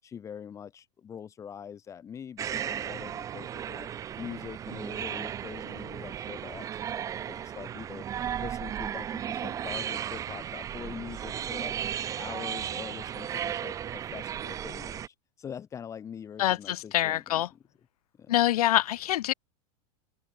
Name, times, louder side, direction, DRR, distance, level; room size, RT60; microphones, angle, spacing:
voice 1, 0.0-3.9 4.1-8.0 8.4-11.7 12.2-17.6 18.1-18.3, left 8 dB, 15° left, 6.0 m, -43 dB
sound 1, 2.4-15.1, right 9 dB, 15° right, 1.4 m, -35 dB
voice 2, 16.4-17.5 18.3-19.3, left 14 dB, 85° left, 1.5 m, -25 dB
open air
supercardioid pair, 170°, 19 cm